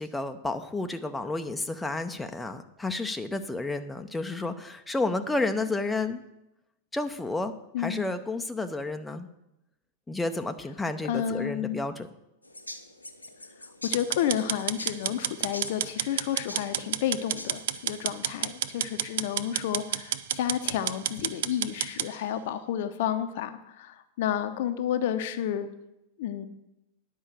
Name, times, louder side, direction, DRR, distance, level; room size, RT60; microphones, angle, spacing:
voice 1, 0.0-6.2 6.9-7.5 7.8-9.3 10.1-12.1, left 2 dB, 10° left, 7 dB, 0.7 m, -31 dB
voice 2, 11.0-11.8 13.8-25.7 26.2-26.5, left 10 dB, 55° left, 10 dB, 0.8 m, -31 dB
sound 1, 12.4-18.0, left 2 dB, 85° left, 0.8 m, -45 dB
sound 2, 13.9-22.1, right 11 dB, 60° right, 0.5 m, -30 dB
9.9 x 5.5 x 7.5 m, 0.87 s
figure-of-eight pair, 90°, 0 cm